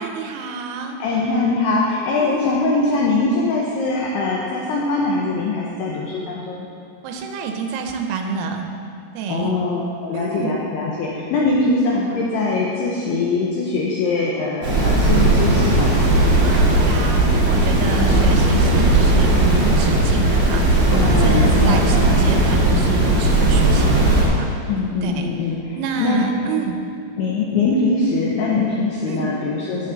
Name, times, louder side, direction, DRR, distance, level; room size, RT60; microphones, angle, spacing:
voice 1, 0.0-1.0 2.2-2.4 7.0-8.6 9.2-9.6 10.1-10.6 16.4-24.5 25.0-25.3 25.8-26.8 27.5-27.6 29.1-29.3, right 4 dB, 90° right, 4 dB, 3.5 m, -27 dB
voice 2, 1.0-6.7 9.3-16.0 17.9-18.3 20.9-22.2 24.7-26.3 27.2-29.9, left 3 dB, 80° left, -4 dB, 2.4 m, -22 dB
sound 1, 14.6-24.2, right 2 dB, 55° right, 3.9 m, -16 dB
14.0 x 6.8 x 4.0 m, 2.4 s
omnidirectional pair, 5.8 m